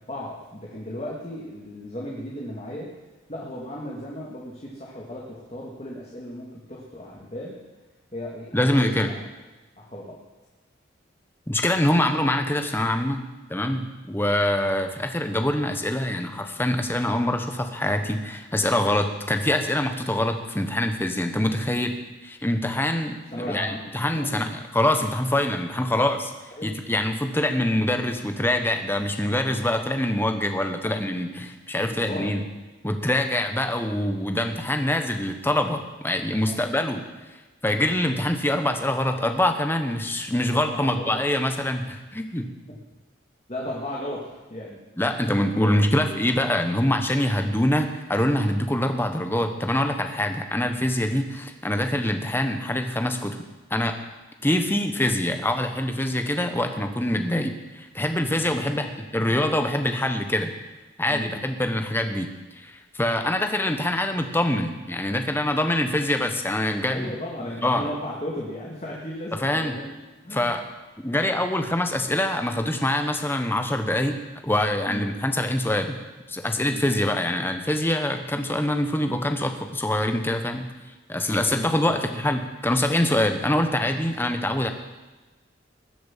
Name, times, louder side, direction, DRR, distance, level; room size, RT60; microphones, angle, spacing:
voice 1, 0.1-3.0 3.3-7.6 8.1-9.2 9.8-10.2 23.3-23.8 24.1-24.4 26.5-26.7 30.8-32.3 36.4-36.6 40.5-41.1 42.7-42.8 43.5-44.8 45.4-46.1 58.4-58.7 59.2-59.4 61.1-61.4 66.9-69.9 70.2-70.5 74.9-75.1 76.7-76.9 81.5-82.0, left 1 dB, 35° left, -3 dB, 2.2 m, -35 dB
voice 2, 8.5-9.1 11.5-13.2 13.5-22.0 22.2-26.3 26.6-32.4 32.8-37.0 37.6-42.5 45.0-53.4 53.7-54.0 54.4-60.5 61.0-62.3 62.6-67.1 67.6-67.9 69.4-69.7 70.3-70.6 71.0-74.2 74.4-76.0 76.3-80.7 81.1-84.7, left 1 dB, 10° left, 6 dB, 1.1 m, -24 dB
20.5 x 7.8 x 7.4 m, 1.2 s
head